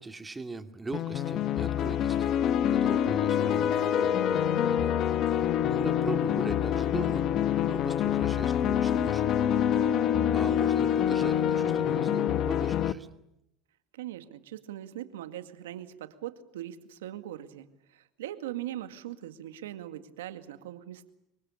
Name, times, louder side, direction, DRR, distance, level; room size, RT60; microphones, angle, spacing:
voice 1, 0.0-4.9 5.3-7.3 7.6-9.3 10.3-13.1, right 3 dB, 15° right, 8 dB, 2.4 m, -40 dB
sound 1, 0.9-12.9, left 9 dB, 55° left, 1.3 m, -26 dB
voice 2, 13.9-21.1, right 13 dB, 90° right, 10 dB, 2.1 m, -40 dB
26.0 x 23.5 x 8.4 m, 0.82 s
supercardioid pair, 90°, 0 cm